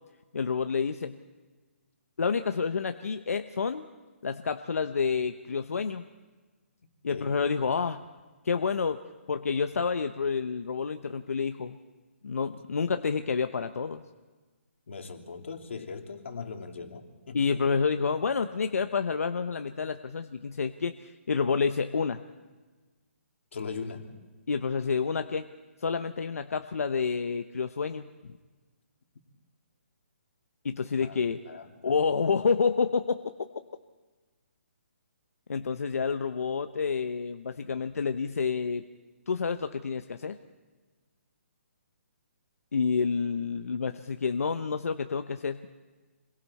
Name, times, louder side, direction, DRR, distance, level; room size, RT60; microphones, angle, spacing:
voice 1, 0.3-1.1 2.2-3.9 4.2-6.0 7.0-8.0 8.4-9.0 9.3-11.8 12.2-14.0 17.3-22.2 24.5-25.5 25.8-28.1 30.6-31.4 31.8-33.2 35.5-38.8 39.3-40.4 42.7-45.6, left 5 dB, 85° left, 8 dB, 0.9 m, -29 dB
voice 2, 14.9-17.6 23.5-24.1 31.0-31.2 31.5-32.0, left 5 dB, 60° left, 4 dB, 2.5 m, -40 dB
28.0 x 22.0 x 4.2 m, 1.3 s
hypercardioid pair, 175°, 8 cm